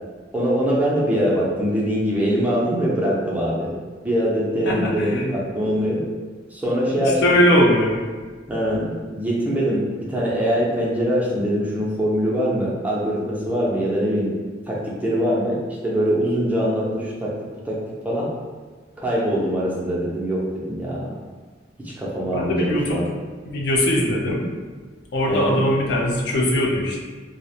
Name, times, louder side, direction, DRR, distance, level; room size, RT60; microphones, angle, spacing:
voice 1, 0.3-3.7 4.0-6.0 6.5-7.2 8.5-14.3 14.7-17.3 17.6-18.3 19.0-21.2 21.8-23.0 25.3-25.6, equal, 10° right, -6 dB, 0.4 m, -23 dB
voice 2, 4.6-5.2 7.0-8.0 22.3-23.0 23.5-24.4 25.1-27.0, equal, 65° left, -2 dB, 0.4 m, -20 dB
2.4 x 2.0 x 2.7 m, 1.4 s
head